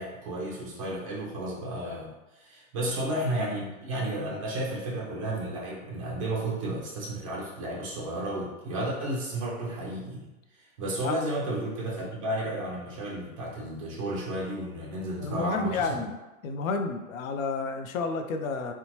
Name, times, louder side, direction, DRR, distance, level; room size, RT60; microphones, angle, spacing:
voice 1, 0.0-16.0, right 1 dB, 25° right, -4 dB, 0.4 m, -33 dB
voice 2, 15.2-16.2 16.4-18.7, left 4 dB, 70° left, 6 dB, 0.5 m, -30 dB
2.8 x 2.2 x 2.9 m, 1.0 s
hypercardioid pair, 155°, 43 cm